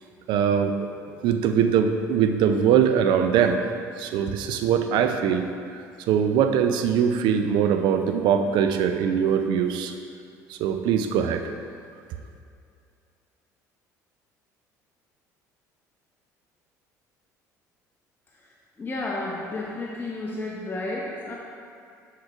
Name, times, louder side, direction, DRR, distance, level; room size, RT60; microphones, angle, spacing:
voice 1, 0.3-0.9 1.2-3.6 4.0-5.5 5.7-9.9 10.5-11.5, right 8 dB, 55° right, 7 dB, 0.4 m, -22 dB
voice 2, 18.8-21.4, left 2 dB, 20° left, -3 dB, 0.8 m, -31 dB
9.5 x 4.7 x 2.5 m, 2.4 s
figure-of-eight pair, 60°, 9 cm